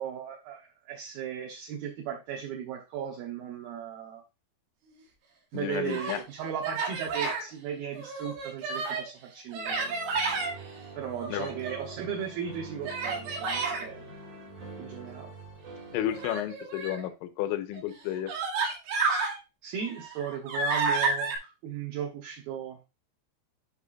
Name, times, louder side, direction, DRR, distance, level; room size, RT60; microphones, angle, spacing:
voice 1, 0.0-4.2 5.5-10.0 11.0-14.1 14.8-15.3 19.6-22.8, right 8 dB, 70° right, 0 dB, 2.4 m, -36 dB
voice 2, 5.5-6.2 11.3-11.5 15.9-18.3, left 12 dB, 85° left, 8 dB, 3.2 m, -32 dB
Human voice, 5.6-6.2 6.6-7.4 8.0-9.1 9.5-10.5 11.2-11.9 12.8-13.8 16.1-17.0 17.7-17.8 18.3-19.4 19.8-21.4, right 4 dB, 90° right, 4.5 m, -31 dB
sound 1, 9.6-16.3, right 3 dB, 45° right, 2.5 m, -45 dB
9.9 x 5.8 x 2.5 m, 0.27 s
omnidirectional pair, 5.4 m